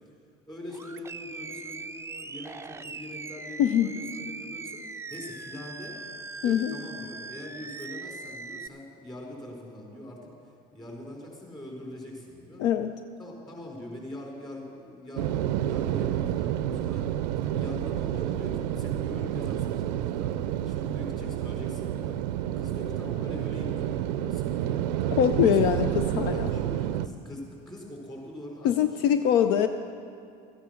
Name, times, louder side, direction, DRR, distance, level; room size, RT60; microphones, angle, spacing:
voice 1, 0.5-6.0 6.4-12.6 13.2-17.1 17.4-20.3 20.6-22.2 22.6-25.1 25.5-25.9 26.3-28.8 29.4-29.5, left 1 dB, 20° left, -1 dB, 4.3 m, -42 dB
Animal, 0.7-8.7, right 3 dB, 15° right, 0.4 m, -40 dB
voice 2, 3.6-3.9 6.4-6.7 12.6-12.9 25.2-25.9 26.2-26.5 28.6-29.7, left 9 dB, 70° left, 9 dB, 0.5 m, -23 dB
sound 1, 15.2-27.1, right 11 dB, 85° right, 0.5 m, -29 dB
13.5 x 10.0 x 6.5 m, 2.3 s
supercardioid pair, 80°, 21 cm